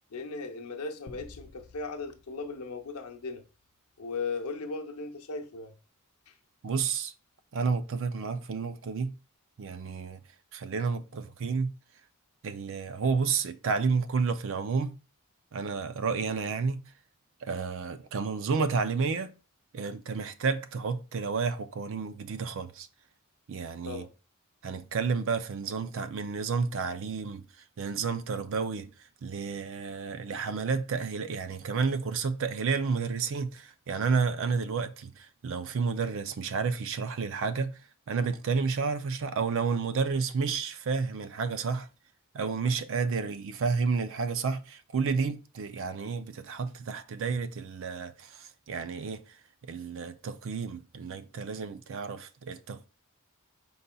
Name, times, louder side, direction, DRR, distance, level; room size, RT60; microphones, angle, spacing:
voice 1, 0.1-3.4 4.0-5.7 6.3-6.4 23.8-24.1, left 4 dB, 90° left, 0.7 m, -37 dB
sound 1, 1.1-3.7, left 3 dB, 45° left, 0.4 m, -53 dB
voice 2, 6.6-7.1 7.5-9.2 9.6-10.2 10.5-11.7 12.4-15.0 15.5-16.8 17.4-19.3 19.7-22.9 23.5-24.0 24.6-27.4 27.8-28.9 29.2-37.8 38.1-41.9 42.3-49.2 49.7-52.9, right 5 dB, 65° right, 0.5 m, -31 dB
5.3 x 4.0 x 2.3 m
head